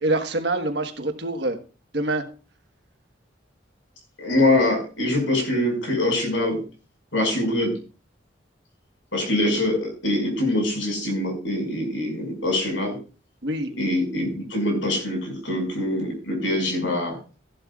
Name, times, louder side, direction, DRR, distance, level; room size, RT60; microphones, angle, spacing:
voice 1, 0.0-1.6 1.9-2.2 13.4-13.7, right 2 dB, 60° right, 5 dB, 1.4 m, -25 dB
voice 2, 4.2-6.6 7.1-7.8 9.1-13.0 13.8-17.2, left 1 dB, 85° left, 2 dB, 5.6 m, -24 dB
14.5 x 11.5 x 2.4 m, 0.34 s
head